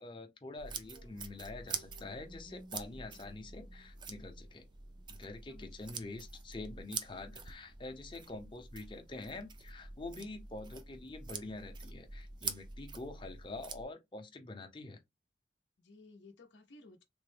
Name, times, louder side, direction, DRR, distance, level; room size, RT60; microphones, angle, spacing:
voice 1, 0.0-4.6 5.1-15.0, left 2 dB, 25° left, 0.6 m, -46 dB
sound 1, 0.6-13.8, right 5 dB, 25° right, 0.4 m, -46 dB
sound 2, 0.8-8.8, right 1 dB, 70° right, 0.7 m, -63 dB
voice 2, 5.5-6.0 15.8-17.0, left 2 dB, 75° left, 0.6 m, -57 dB
3.4 x 2.1 x 3.2 m
head